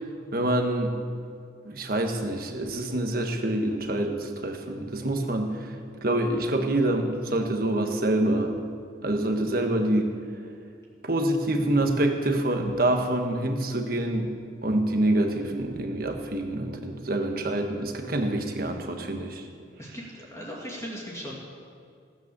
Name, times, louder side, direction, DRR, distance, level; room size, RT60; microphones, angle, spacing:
voice 1, 0.3-1.0 1.6-5.7 6.0-8.5 9.0-10.1 11.0-14.3 14.6-19.4, right 1 dB, 50° right, 4 dB, 1.4 m, -26 dB
voice 2, 19.8-21.4, equal, 15° left, -4 dB, 2.2 m, -38 dB
16.0 x 9.1 x 6.8 m, 2.2 s
head